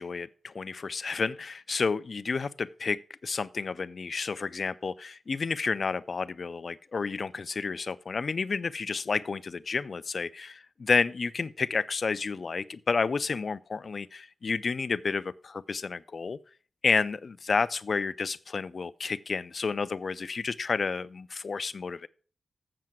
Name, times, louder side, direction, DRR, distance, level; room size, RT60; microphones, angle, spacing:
voice 1, 0.0-16.4 16.8-22.1, left 4 dB, 60° left, 0.4 m, -30 dB
7.6 x 7.5 x 5.9 m
cardioid pair, 75°, 0 cm